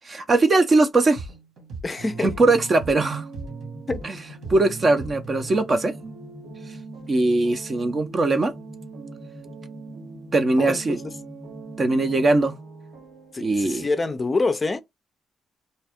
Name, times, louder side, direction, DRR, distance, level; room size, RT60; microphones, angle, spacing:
voice 1, 0.1-1.2 2.2-3.3 4.0-4.1 4.5-6.1 7.1-8.5 10.3-11.0 11.8-12.5 13.4-13.9, right 2 dB, 35° right, 0.6 m, -20 dB
sound 1, 1.2-5.7, right 4 dB, 70° right, 1.6 m, -39 dB
voice 2, 1.8-2.3 3.9-4.0 10.6-11.0 13.3-14.8, left 3 dB, 25° left, 0.4 m, -26 dB
sound 2, 2.0-14.2, right 5 dB, 90° right, 1.3 m, -43 dB
sound 3, 2.4-12.4, left 1 dB, 5° left, 0.8 m, -44 dB
2.7 x 2.3 x 3.5 m
cardioid pair, 90°, 0 cm